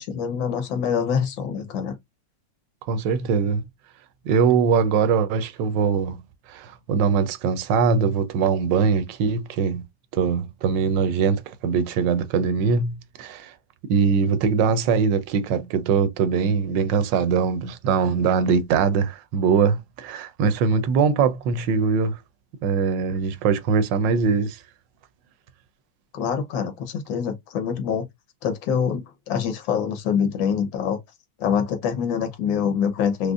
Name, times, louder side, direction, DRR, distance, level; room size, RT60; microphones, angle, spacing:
voice 1, 0.0-1.9 26.1-28.1 28.4-31.0 31.4-33.3, left 7 dB, 85° left, 1.6 m, -25 dB
voice 2, 2.9-3.6 4.3-6.2 6.5-9.8 10.1-13.5 13.9-22.2 22.6-24.6, right 5 dB, 80° right, 1.2 m, -22 dB
5.0 x 2.1 x 2.4 m
omnidirectional pair, 2.0 m